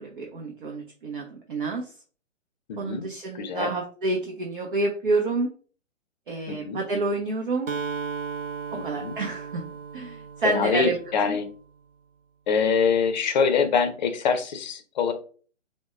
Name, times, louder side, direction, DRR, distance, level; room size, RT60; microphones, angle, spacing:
voice 1, 0.0-1.9 2.8-5.5 6.3-7.7 8.8-9.6 9.9-10.9 11.3-11.4, right 3 dB, 45° right, 1 dB, 0.7 m, -28 dB
voice 2, 2.7-3.1 3.3-3.7 6.5-6.8 8.8-9.2 10.4-11.5 12.5-15.1, left 5 dB, 35° left, 8 dB, 0.7 m, -24 dB
Acoustic guitar, 7.7-11.5, right 5 dB, 90° right, 0.6 m, -35 dB
6.0 x 2.2 x 2.4 m, 0.41 s
figure-of-eight pair, 130°, 37 cm